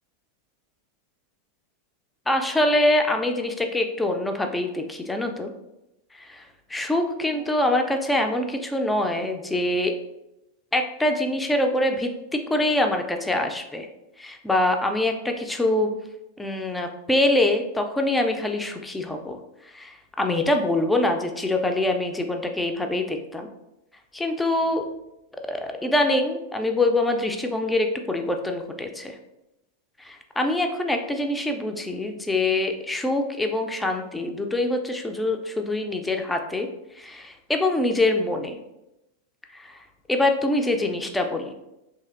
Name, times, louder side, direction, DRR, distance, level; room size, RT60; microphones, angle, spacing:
voice 1, 2.3-5.5 6.1-6.4 6.7-9.9 10.7-13.9 14.2-15.9 16.4-23.5 24.1-24.9 25.5-29.2 30.0-36.7 37.0-38.6 39.5-39.7 40.1-41.5, left 1 dB, 10° left, 4 dB, 0.3 m, -24 dB
3.0 x 2.7 x 2.3 m, 0.92 s
figure-of-eight pair, 90°, 0 cm